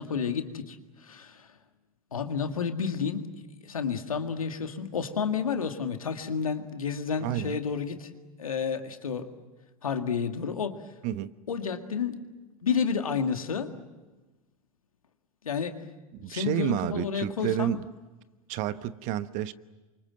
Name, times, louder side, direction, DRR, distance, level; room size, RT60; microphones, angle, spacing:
voice 1, 0.0-1.5 2.1-3.3 3.6-8.1 8.4-9.3 9.8-10.8 11.5-12.3 12.6-13.7 15.4-15.8 16.3-17.7, left 6 dB, 80° left, 6 dB, 2.0 m, -30 dB
voice 2, 7.2-7.6 11.0-11.3 16.1-17.9 18.5-19.5, right 12 dB, 45° right, 15 dB, 1.0 m, -30 dB
28.5 x 24.5 x 7.6 m, 1.2 s
figure-of-eight pair, 90°, 18 cm